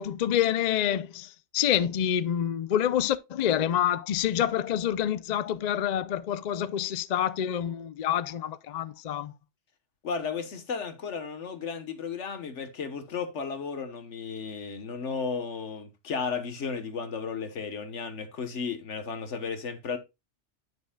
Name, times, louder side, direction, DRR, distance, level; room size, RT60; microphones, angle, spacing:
voice 1, 0.0-9.3, left 10 dB, 55° left, 0.5 m, -27 dB
voice 2, 10.0-20.0, left 5 dB, 80° left, 1.5 m, -34 dB
9.9 x 6.2 x 2.2 m
omnidirectional pair, 1.2 m